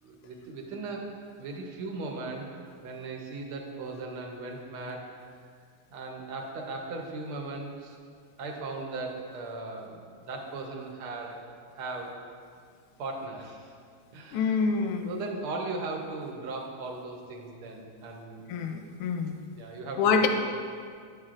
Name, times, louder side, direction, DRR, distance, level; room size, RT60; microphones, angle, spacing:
voice 1, 0.0-2.6 2.8-5.1 5.9-8.0 8.4-11.4 11.7-12.2 13.0-13.7 14.1-14.7 15.0-18.5 19.6-20.3, right 3 dB, 90° right, 1 dB, 1.8 m, -38 dB
voice 2, 14.3-15.1 18.5-19.4 20.0-20.3, left 5 dB, 85° left, 5 dB, 1.5 m, -26 dB
9.1 x 7.4 x 2.5 m, 2.1 s
omnidirectional pair, 2.3 m